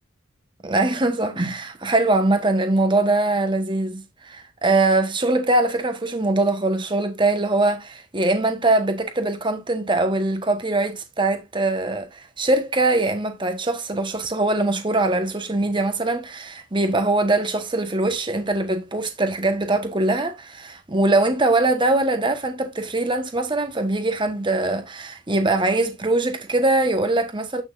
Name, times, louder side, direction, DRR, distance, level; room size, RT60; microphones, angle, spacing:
voice 1, 0.6-27.6, right 2 dB, 25° right, 1.2 m, -22 dB
8.6 x 6.2 x 2.5 m
head